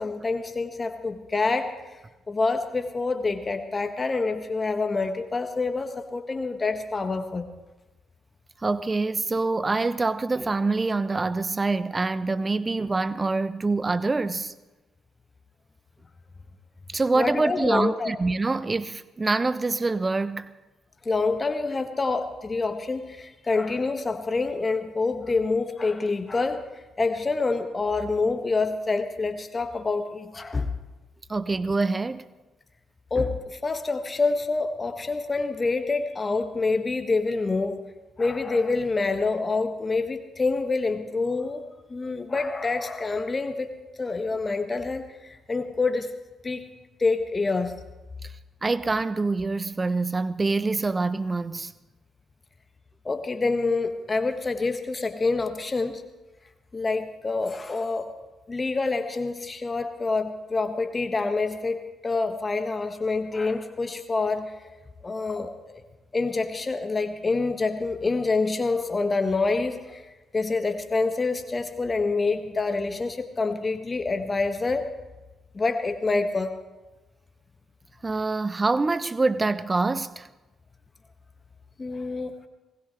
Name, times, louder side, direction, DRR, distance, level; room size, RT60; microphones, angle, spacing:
voice 1, 0.0-1.8 2.3-7.5 17.1-18.1 21.0-26.6 27.0-30.7 33.1-37.8 38.2-41.6 41.9-43.7 44.0-46.1 46.4-46.7 47.0-47.7 53.0-56.0 56.7-64.5 65.0-65.8 66.1-70.0 70.3-74.9 75.5-76.5 81.8-82.4, left 3 dB, 30° left, 1.7 m, -27 dB
voice 2, 8.6-14.5 16.9-20.5 31.3-32.3 48.6-51.7 78.0-80.3, right 3 dB, 25° right, 0.8 m, -25 dB
20.5 x 20.0 x 3.3 m
figure-of-eight pair, 40°, 0 cm